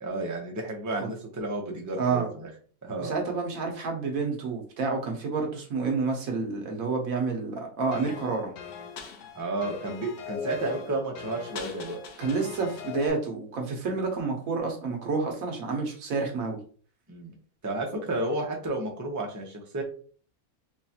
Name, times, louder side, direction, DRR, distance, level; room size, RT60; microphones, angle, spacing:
voice 1, 0.0-2.5 2.8-3.1 9.3-12.0 17.1-17.3 17.6-19.8, right 2 dB, 20° right, 0 dB, 0.6 m, -32 dB
voice 2, 2.0-2.3 3.0-8.5 12.2-16.6, right 4 dB, 75° right, 2 dB, 1.3 m, -29 dB
sound 1, 7.9-13.1, left 6 dB, 65° left, 1.0 m, -39 dB
4.7 x 2.3 x 2.8 m, 0.43 s
omnidirectional pair, 1.5 m